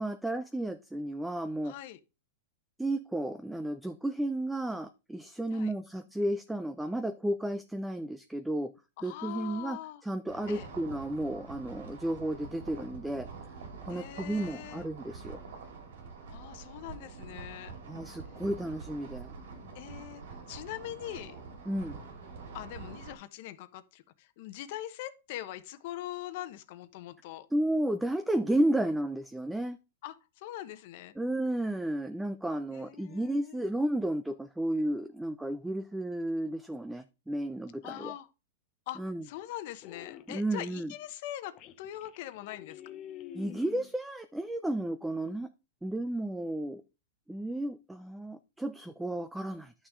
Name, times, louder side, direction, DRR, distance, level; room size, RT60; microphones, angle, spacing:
voice 1, 0.0-1.7 2.8-8.7 9.0-13.3 13.9-15.4 17.9-19.3 21.7-22.0 27.5-29.8 31.2-38.1 39.0-39.2 40.3-40.9 43.3-45.5 45.8-46.8 47.3-49.7, right 1 dB, 5° right, 0.5 m, -33 dB
voice 2, 1.6-2.0 5.5-5.7 9.0-10.0 10.5-10.7 13.9-14.9 16.3-17.8 19.7-20.2 20.5-21.4 22.5-27.5 30.0-31.2 32.7-33.6 37.8-38.3 38.9-42.8, left 13 dB, 55° left, 1.1 m, -42 dB
sound 1, 10.3-23.1, right 4 dB, 80° right, 2.9 m, -46 dB
sound 2, 38.9-39.4 39.8-40.3 41.0-41.1 41.5-44.0, left 10 dB, 35° left, 0.8 m, -47 dB
11.0 x 6.3 x 3.7 m
supercardioid pair, 145°, 0 cm